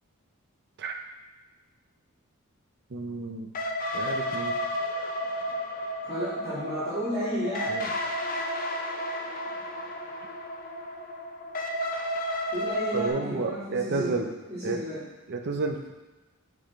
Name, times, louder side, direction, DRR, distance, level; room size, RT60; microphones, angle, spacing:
voice 1, 2.9-3.5 3.9-4.6 7.7-7.9 12.9-14.3 14.6-14.8 15.3-15.9, right 3 dB, 50° right, 4 dB, 0.6 m, -31 dB
sound 1, 3.5-13.1, equal, 40° left, 0.5 m, -32 dB
voice 2, 6.0-7.8 12.5-15.0, equal, 25° right, -12 dB, 1.9 m, -33 dB
6.3 x 4.8 x 3.1 m, 1.1 s
head